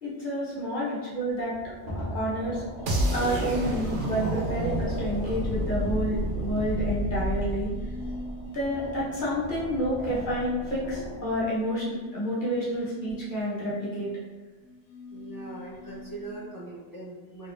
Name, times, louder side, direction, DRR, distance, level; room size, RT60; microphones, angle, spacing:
voice 1, 0.0-2.6 3.1-7.7 8.5-14.1, equal, 45° left, -8 dB, 1.1 m, -29 dB
sound 1, 1.4-7.5 7.9-11.4, equal, 40° right, 1.2 m, -40 dB
sound 2, 2.8-16.8, left 1 dB, 80° left, 0.9 m, -44 dB
sound 3, 2.9-8.8, right 1 dB, 55° right, 0.7 m, -30 dB
voice 2, 15.1-17.5, right 2 dB, 25° left, -7 dB, 0.6 m, -41 dB
3.3 x 3.1 x 2.5 m, 1.3 s
omnidirectional pair, 1.2 m